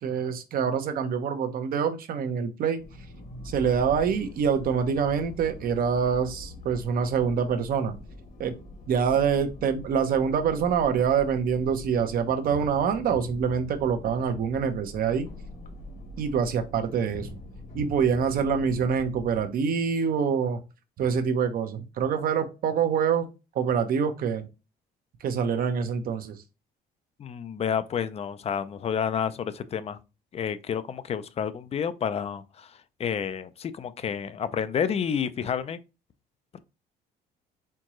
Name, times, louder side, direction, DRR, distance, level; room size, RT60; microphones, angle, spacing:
voice 1, 0.0-2.8 3.4-7.9 8.4-8.5 8.9-15.3 16.2-17.3 17.7-20.6 21.0-23.3 23.5-24.5 25.2-26.4, right 7 dB, 60° right, 0.9 m, -25 dB
sound 1, 2.8-19.4, left 2 dB, 55° left, 1.3 m, -43 dB
voice 2, 27.2-30.0 30.3-35.8 36.5-36.6, left 7 dB, 35° left, 0.5 m, -30 dB
4.5 x 3.6 x 3.1 m
cardioid pair, 110°, 17 cm